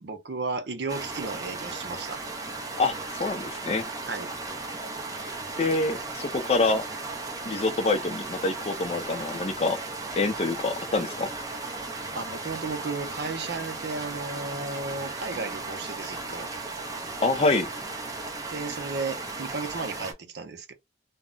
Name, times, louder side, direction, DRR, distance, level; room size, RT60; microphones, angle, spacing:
voice 1, 0.0-2.2 4.0-4.3 12.1-16.5 18.5-20.7, right 3 dB, 70° right, 0.6 m, -34 dB
sound 1, 0.9-20.1, right 3 dB, 20° right, 0.5 m, -36 dB
voice 2, 2.8-3.9 5.6-6.8 7.5-9.8 10.2-11.3 17.2-17.7, left 3 dB, 35° left, 0.4 m, -26 dB
2.2 x 2.0 x 3.7 m
head